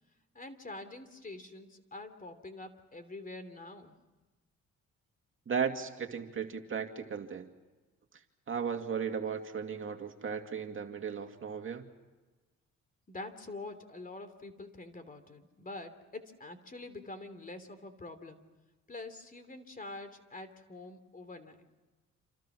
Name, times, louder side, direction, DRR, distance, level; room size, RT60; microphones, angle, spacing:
voice 1, 0.3-4.0 13.1-18.4 18.9-21.7, left 2 dB, 30° left, 11 dB, 3.0 m, -46 dB
voice 2, 5.5-7.5 8.5-11.9, right 6 dB, 45° right, 5 dB, 2.5 m, -36 dB
28.0 x 27.5 x 6.2 m, 1.2 s
cardioid pair, 90°, 30 cm